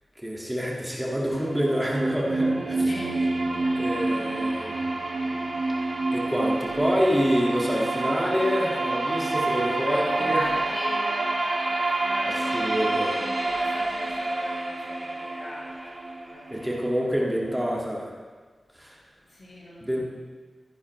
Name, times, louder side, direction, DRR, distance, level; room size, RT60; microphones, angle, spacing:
voice 1, 0.2-2.9 3.7-4.8 6.1-10.4 12.5-13.2 16.5-18.2 18.7-19.0 19.8-20.1, equal, 5° right, -4 dB, 2.0 m, -27 dB
sound 1, 1.2-17.1, right 2 dB, 45° right, 2.3 m, -28 dB
voice 2, 2.8-3.8 9.8-16.0 16.3-16.7 19.3-20.1, left 1 dB, 60° left, -4 dB, 3.0 m, -40 dB
15.0 x 10.5 x 3.2 m, 1.4 s
wide cardioid pair, 105°, 0 cm